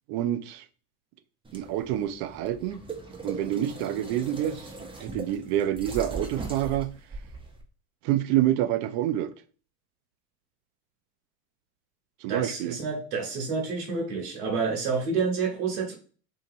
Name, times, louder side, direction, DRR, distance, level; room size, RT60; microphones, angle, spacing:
voice 1, 0.1-0.6 1.5-2.8 3.2-4.7 5.0-6.9 8.0-9.3 12.2-12.8, right 12 dB, 55° right, 0.5 m, -27 dB
sound 1, 1.4-7.6, right 3 dB, 10° right, 0.6 m, -40 dB
voice 2, 12.3-15.9, right 4 dB, 75° right, 1.1 m, -29 dB
2.8 x 2.7 x 2.6 m
hypercardioid pair, 80°, 45 cm